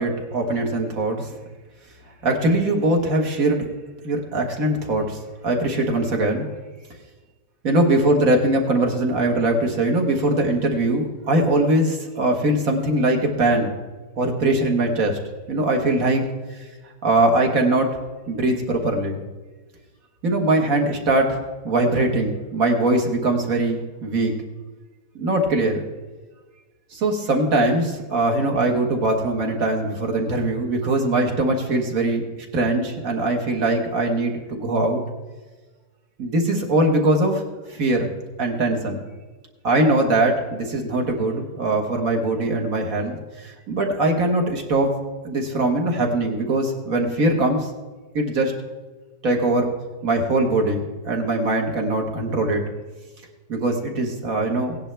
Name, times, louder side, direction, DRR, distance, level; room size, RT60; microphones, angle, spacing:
voice 1, 0.0-1.4 2.2-3.6 4.0-6.5 7.6-13.7 14.2-15.2 15.5-16.3 16.5-16.6 17.0-17.9 18.3-19.2 20.2-21.4 21.6-24.3 25.2-25.8 26.9-35.0 36.2-37.4 37.7-38.1 38.4-39.0 39.6-44.9 45.2-47.7 48.1-48.5 49.2-49.7 50.0-52.6 53.5-54.8, right 2 dB, 50° right, 2 dB, 1.9 m, -21 dB
17.0 x 10.0 x 3.4 m, 1.3 s
omnidirectional pair, 2.0 m